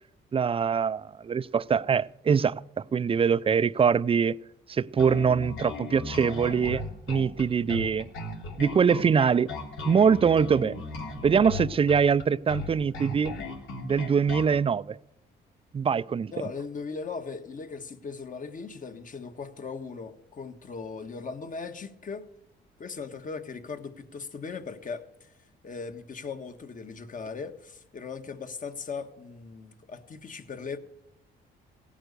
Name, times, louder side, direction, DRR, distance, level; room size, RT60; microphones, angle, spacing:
voice 1, 0.3-4.4 4.7-6.8 7.1-8.1 8.6-9.5 9.9-10.8 11.2-13.3 13.8-15.0 15.7-16.3, right 6 dB, 30° right, 0.4 m, -23 dB
Bass guitar, 5.0-14.6, left 3 dB, 85° left, 3.4 m, -37 dB
voice 2, 16.3-22.3 22.8-25.3 25.6-30.8, left 5 dB, 40° left, 1.4 m, -38 dB
16.5 x 9.1 x 6.8 m
cardioid pair, 90°, 20 cm